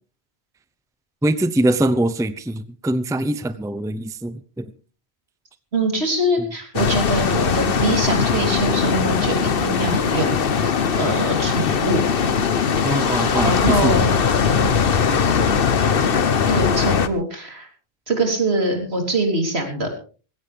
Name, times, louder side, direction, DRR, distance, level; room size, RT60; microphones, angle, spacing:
voice 1, 1.2-4.7 12.8-13.9 15.1-15.2, right 1 dB, 5° right, 13 dB, 0.6 m, -23 dB
voice 2, 5.7-12.0 13.4-14.1 16.5-17.7 18.1-19.9, right 1 dB, 80° right, 4 dB, 3.8 m, -23 dB
sound 1, 6.7-17.1, left 6 dB, 65° left, 1.1 m, -20 dB
19.5 x 16.5 x 3.4 m, 0.37 s
omnidirectional pair, 1.1 m